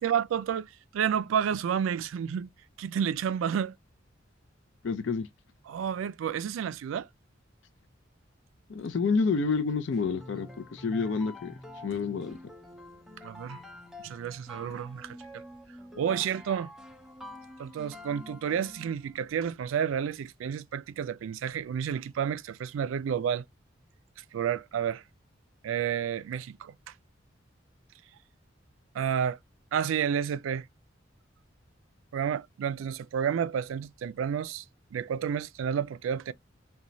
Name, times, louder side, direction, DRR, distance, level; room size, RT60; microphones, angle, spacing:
voice 1, 0.0-2.5 2.8-3.7 5.7-7.1 13.2-13.6 14.0-15.2 16.0-16.7 17.6-23.4 24.3-25.0 25.6-26.7 28.9-29.4 29.7-30.6 32.1-34.6 34.9-36.3, right 8 dB, 90° right, 0.3 m, -30 dB
voice 2, 4.8-5.3 8.7-11.5 11.8-12.4, left 4 dB, 65° left, 0.4 m, -29 dB
sound 1, 9.9-19.1, left 1 dB, ahead, 0.5 m, -47 dB
2.9 x 2.2 x 2.5 m
head